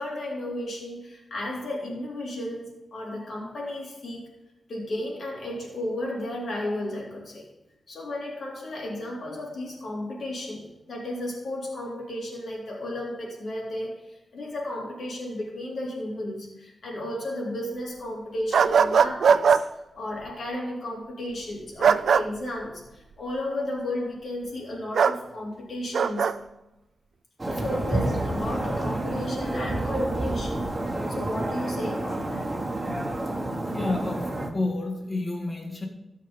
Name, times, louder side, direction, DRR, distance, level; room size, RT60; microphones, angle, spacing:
voice 1, 0.0-4.3 4.7-7.5 7.9-26.4 27.5-30.7 31.1-32.5, left 1 dB, 70° left, -3 dB, 3.6 m, -34 dB
sound 1, 18.5-19.6 21.8-22.2 24.9-25.2 25.9-26.3, right 6 dB, 80° right, 0.4 m, -19 dB
sound 2, 27.4-34.5, right 1 dB, 20° right, 1.9 m, -29 dB
voice 2, 33.6-35.9, left 2 dB, 35° left, 1 dB, 2.1 m, -30 dB
14.5 x 5.8 x 5.4 m, 0.95 s
wide cardioid pair, 85°, 0 cm